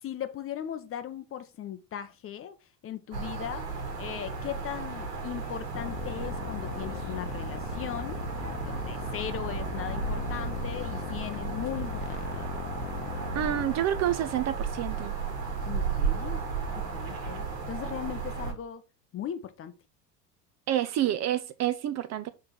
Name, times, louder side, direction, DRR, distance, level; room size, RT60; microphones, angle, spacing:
voice 1, 0.0-2.5 2.8-12.2 15.6-16.4 16.7-18.8 19.1-19.7, left 10 dB, 25° left, 0.7 m, -38 dB
sound 1, 3.1-18.5, right 5 dB, 75° right, 1.8 m, -34 dB
sound 2, 5.7-13.7, left 9 dB, 65° left, 1.0 m, -38 dB
voice 2, 13.3-15.2 20.7-22.3, right 12 dB, 35° right, 0.6 m, -28 dB
6.1 x 3.7 x 4.4 m
figure-of-eight pair, 75°, 50 cm